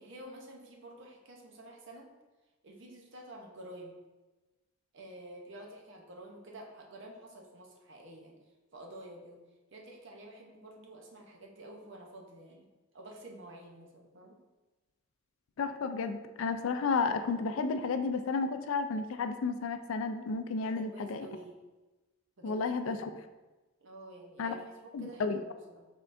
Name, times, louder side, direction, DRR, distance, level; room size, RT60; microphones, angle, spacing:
voice 1, 0.0-2.1 2.6-4.0 4.9-8.4 8.7-9.4 9.7-12.7 12.9-14.4 20.6-21.6 22.4-22.6 23.8-25.9, right 1 dB, 60° right, 1 dB, 0.8 m, -49 dB
voice 2, 15.6-21.3 22.4-23.2 24.4-24.5 24.9-25.4, left 4 dB, 70° left, 8 dB, 0.4 m, -32 dB
5.5 x 3.6 x 2.6 m, 1.1 s
head